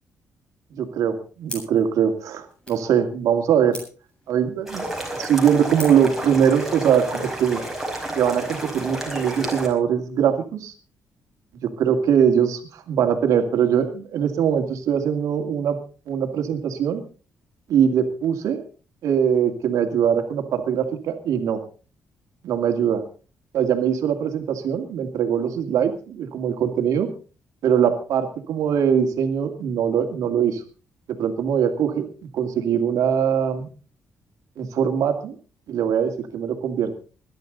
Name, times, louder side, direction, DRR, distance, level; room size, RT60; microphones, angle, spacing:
voice 1, 0.7-3.8 4.3-4.9 5.2-7.6 8.1-10.7 11.6-15.8 16.1-17.0 17.7-18.6 19.0-21.6 22.4-23.0 23.5-27.1 27.6-30.6 31.1-33.7 34.6-35.3 35.7-36.9, right 8 dB, 85° right, 5 dB, 2.3 m, -22 dB
sound 1, 1.4-6.9, equal, 20° left, 7.8 m, -43 dB
sound 2, 4.7-9.7, right 1 dB, 5° right, 5.2 m, -30 dB
21.5 x 11.5 x 4.0 m, 0.37 s
cardioid pair, 110°, 6 cm